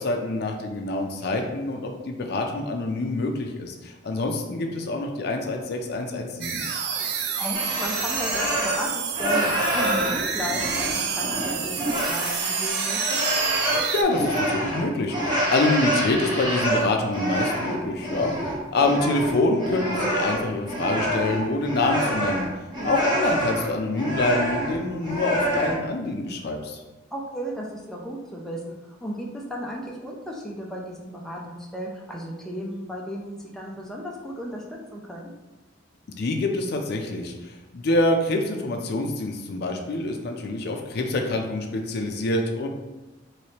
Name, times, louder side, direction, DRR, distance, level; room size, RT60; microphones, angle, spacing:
voice 1, 0.0-6.6 13.9-18.3 18.7-22.5 22.8-26.8 36.2-42.7, left 2 dB, 60° left, 3 dB, 0.4 m, -26 dB
sound 1, 6.4-14.0, right 6 dB, 60° right, 0.4 m, -28 dB
voice 2, 7.2-13.2 18.8-19.1 22.7-23.0 27.1-35.3, equal, 5° left, -2 dB, 0.4 m, -35 dB
sound 2, 7.5-8.9 9.1-25.8, right 1 dB, 25° right, 0.9 m, -27 dB
3.1 x 3.0 x 2.9 m, 1.1 s
head